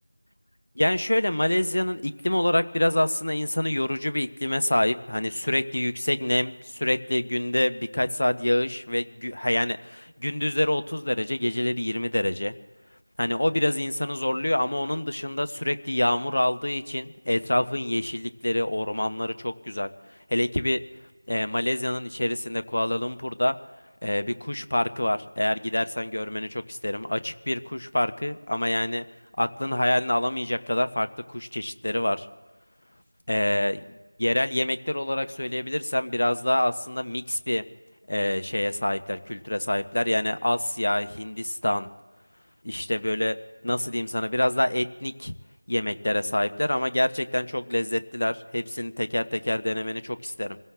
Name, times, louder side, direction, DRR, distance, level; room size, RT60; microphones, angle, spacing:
voice 1, 0.8-12.5 13.2-19.9 20.3-20.8 21.3-23.5 24.0-29.0 29.4-32.3 33.3-37.6 38.1-41.9 42.6-43.4 43.6-45.3 45.7-50.6, left 1 dB, 45° left, 10 dB, 0.8 m, -26 dB
27.5 x 16.5 x 2.5 m, 1.2 s
figure-of-eight pair, 175°, 0 cm